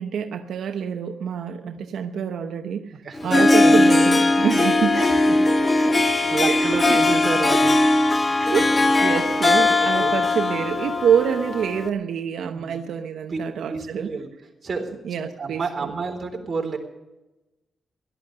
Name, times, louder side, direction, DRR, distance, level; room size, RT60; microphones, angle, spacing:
voice 1, 0.0-2.9 3.2-5.0 6.5-7.0 8.5-14.1 15.0-15.9, right 7 dB, 85° right, 6 dB, 0.9 m, -26 dB
voice 2, 2.9-4.0 4.9-5.2 5.5-7.8 8.3-8.7 9.8-10.1 12.5-12.8 13.3-13.4 13.7-14.3 14.6-16.8, right 4 dB, 40° right, 2 dB, 3.9 m, -30 dB
Harp, 3.1-11.9, left 2 dB, 30° left, 1.3 m, -19 dB
17.5 x 12.5 x 6.8 m, 1.0 s
cardioid pair, 100°, 0 cm